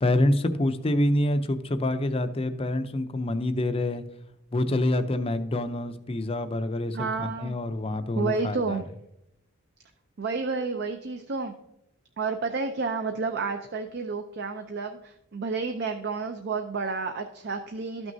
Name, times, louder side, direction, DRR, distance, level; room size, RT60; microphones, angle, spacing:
voice 1, 0.0-4.0 4.5-8.8, left 1 dB, 25° left, 10 dB, 0.5 m, -26 dB
voice 2, 6.9-7.6 8.1-8.8 10.2-11.5 12.2-18.1, right 4 dB, 50° right, 6 dB, 0.5 m, -30 dB
13.0 x 6.1 x 2.7 m, 0.80 s
head